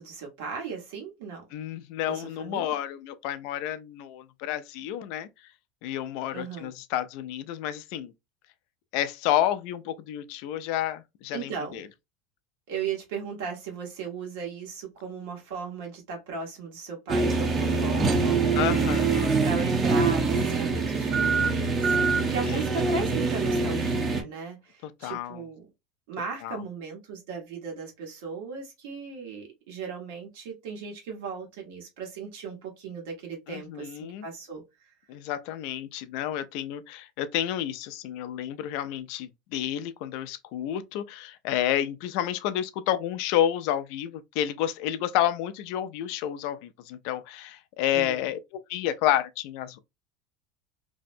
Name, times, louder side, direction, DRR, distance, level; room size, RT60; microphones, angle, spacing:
voice 1, 0.0-1.4 2.1-2.6 6.3-6.7 11.3-11.8 12.7-18.8 19.4-25.7 26.1-34.6 47.9-48.3, right 5 dB, 75° right, 1.2 m, -37 dB
voice 2, 1.5-5.3 5.8-8.1 8.9-11.9 18.5-19.3 22.5-22.6 24.8-25.4 26.4-26.6 33.5-34.3 35.1-49.8, left 11 dB, 65° left, 0.3 m, -30 dB
sound 1, 17.1-24.2, right 4 dB, 30° right, 0.6 m, -24 dB
2.6 x 2.1 x 2.5 m
supercardioid pair, 120°, 0 cm